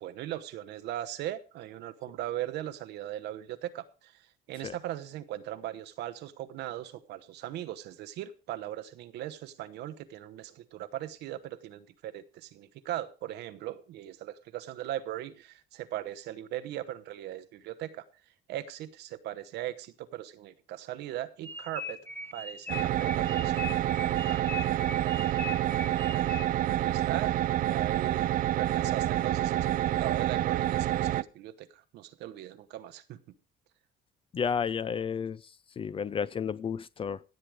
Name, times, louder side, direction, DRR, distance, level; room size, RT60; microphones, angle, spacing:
voice 1, 0.0-18.0 18.5-22.0 22.3-23.8 24.0-25.1 25.9-26.3 26.6-28.3 28.5-33.2, right 13 dB, 80° right, 1.0 m, -39 dB
sound 1, 21.4-26.7, left 3 dB, 10° left, 1.1 m, -40 dB
sound 2, 22.7-31.2, right 13 dB, 55° right, 0.5 m, -28 dB
voice 2, 34.3-35.4 35.8-37.2, left 7 dB, 30° left, 0.5 m, -31 dB
15.0 x 7.7 x 4.9 m
cardioid pair, 110°, 17 cm